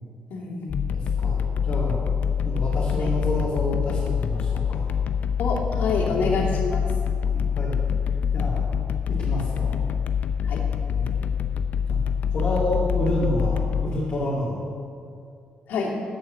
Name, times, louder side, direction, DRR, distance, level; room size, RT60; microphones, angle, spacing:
voice 1, 0.3-0.9 3.0-3.1 5.4-6.8 10.4-10.7 15.7-16.0, left 4 dB, 80° left, -3 dB, 2.7 m, -27 dB
sound 1, 0.7-13.8, left 7 dB, 60° left, 0.6 m, -25 dB
voice 2, 0.9-2.1 2.4-4.9 5.9-6.5 7.2-7.8 8.3-8.6 9.2-9.7 10.9-11.3 11.9-12.0 12.3-14.6, left 1 dB, 40° left, -7 dB, 2.9 m, -29 dB
11.0 x 8.7 x 7.6 m, 2.4 s
cardioid pair, 165°, 3 cm